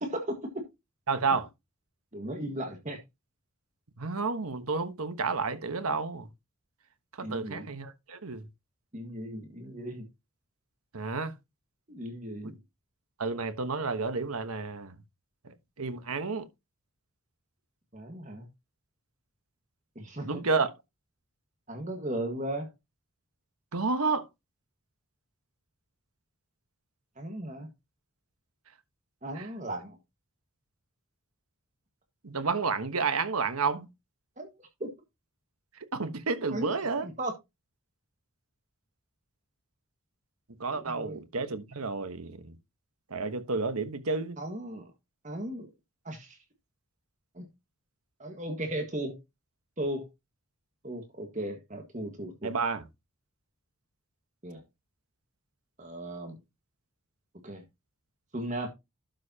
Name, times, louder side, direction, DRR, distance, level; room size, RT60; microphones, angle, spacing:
voice 1, 0.0-0.6 2.1-3.0 7.2-7.7 8.9-10.1 11.9-12.6 17.9-18.5 20.0-20.4 21.7-22.7 27.2-27.7 29.2-30.0 34.4-34.5 34.8-34.9 36.5-37.3 40.7-41.2 44.4-44.9 45.2-45.7 46.1-46.4 47.3-47.4 48.2-49.2 49.8-50.1 50.8-52.5 54.4-54.6 55.8-56.4 57.4-57.6 58.3-58.7, right 1 dB, 35° right, 1.7 m, -36 dB
voice 2, 1.1-1.5 4.0-6.3 7.2-8.5 10.9-11.4 12.4-12.5 13.2-15.0 15.4-16.4 20.2-20.7 23.7-24.3 29.4-29.5 32.2-33.9 35.8-37.1 40.6-42.5 43.1-44.4 52.4-52.8, right 4 dB, 90° right, 1.2 m, -31 dB
12.0 x 6.5 x 2.9 m
head